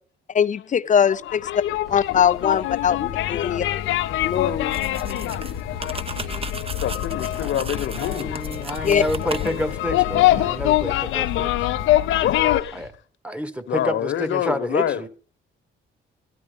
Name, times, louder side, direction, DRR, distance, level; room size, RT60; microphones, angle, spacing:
voice 1, 0.3-1.5 1.9-3.7 4.2-4.8 8.8-9.0, left 8 dB, 40° left, 0.6 m, -21 dB
voice 2, 1.1-1.7 3.2-3.5 3.8-3.9 5.1-5.8 6.2-6.4 6.8-8.4 9.0-9.3 10.3-10.6 11.7-11.8 12.2-12.9 13.7-15.0, left 11 dB, 70° left, 1.1 m, -28 dB
sound 1, 1.2-12.6, left 14 dB, 90° left, 0.7 m, -24 dB
sound 2, 1.8-12.9, right 2 dB, 55° right, 3.7 m, -48 dB
sound 3, 4.7-9.8, right 3 dB, 30° right, 1.0 m, -36 dB
voice 3, 7.9-11.7 12.7-12.9 13.2-15.1, equal, 5° right, 1.4 m, -29 dB
15.0 x 11.0 x 5.1 m
cardioid pair, 90°, 20 cm